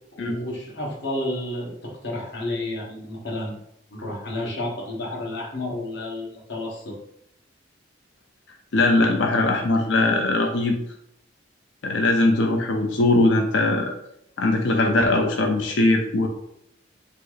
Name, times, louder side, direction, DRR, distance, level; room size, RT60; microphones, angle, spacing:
voice 1, 0.1-3.6 3.9-6.9, left 1 dB, 65° left, -2 dB, 1.3 m, -31 dB
voice 2, 8.7-10.8 11.8-13.9 14.4-16.3, left 2 dB, 85° left, 2 dB, 0.6 m, -20 dB
5.6 x 2.1 x 4.0 m, 0.75 s
head